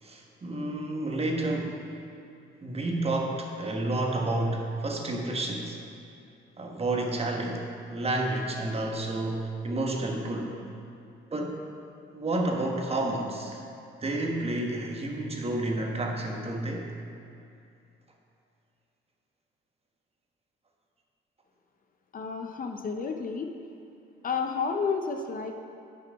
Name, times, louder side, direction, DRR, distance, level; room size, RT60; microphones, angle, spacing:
voice 1, 0.0-1.8 2.6-5.8 6.6-10.5 11.3-11.6 12.1-13.6 14.0-16.9, right 2 dB, 30° right, 1 dB, 1.2 m, -30 dB
voice 2, 22.1-23.5 24.2-25.6, left 5 dB, 45° left, 4 dB, 0.6 m, -31 dB
8.1 x 5.8 x 5.2 m, 2.5 s
cardioid pair, 90°, 20 cm